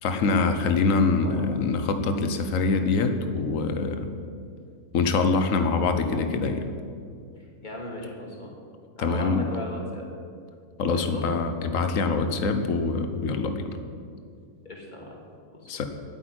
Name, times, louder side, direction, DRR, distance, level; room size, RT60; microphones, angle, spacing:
voice 1, 0.0-4.1 4.9-6.6 9.0-9.5 10.8-13.7 15.7-15.9, left 4 dB, 65° left, 7 dB, 1.3 m, -24 dB
voice 2, 7.4-8.6 9.0-10.0 10.9-11.3 14.6-15.2 15.5-15.7, left 1 dB, 30° left, -2 dB, 2.4 m, -37 dB
9.1 x 8.5 x 9.6 m, 2.3 s
omnidirectional pair, 1.6 m